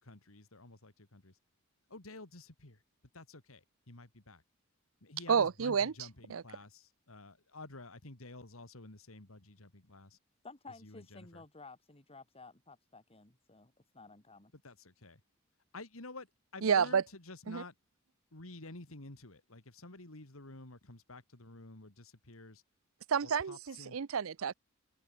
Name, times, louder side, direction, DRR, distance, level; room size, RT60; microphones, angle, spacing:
voice 1, 0.0-1.3 1.9-2.8 3.1-4.4 5.0-10.2 10.8-11.4 14.6-15.2 15.7-16.3 16.5-17.7 18.3-22.6 23.5-24.0, left 2 dB, 80° left, 2.8 m, -51 dB
voice 2, 5.3-5.9 6.3-6.4 16.6-17.0 17.5-17.6 23.1-24.5, right 6 dB, 75° right, 0.6 m, -30 dB
voice 3, 10.4-14.5, left 3 dB, 30° left, 2.7 m, -54 dB
head